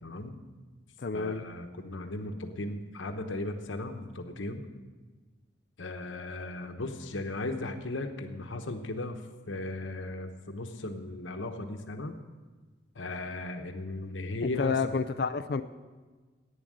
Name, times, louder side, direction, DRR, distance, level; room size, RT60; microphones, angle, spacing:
voice 1, 0.0-0.4 1.1-4.6 5.8-9.2 9.5-12.2 12.9-14.8, left 2 dB, 90° left, 5 dB, 1.1 m, -36 dB
voice 2, 1.0-1.4 14.6-15.6, left 5 dB, 55° left, 9 dB, 0.4 m, -29 dB
11.0 x 9.2 x 7.7 m, 1.4 s
head